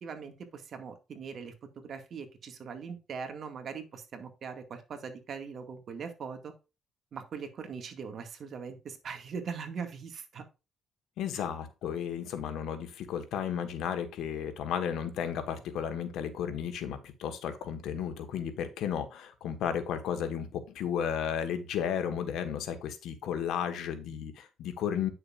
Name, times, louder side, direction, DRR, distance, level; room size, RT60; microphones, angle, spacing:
voice 1, 0.0-6.5 7.1-10.4 11.3-11.4, right 6 dB, 60° right, 5 dB, 2.1 m, -41 dB
voice 2, 11.2-25.1, left 8 dB, 85° left, 8 dB, 1.5 m, -33 dB
9.8 x 6.6 x 2.5 m, 0.28 s
cardioid pair, 90°, 0 cm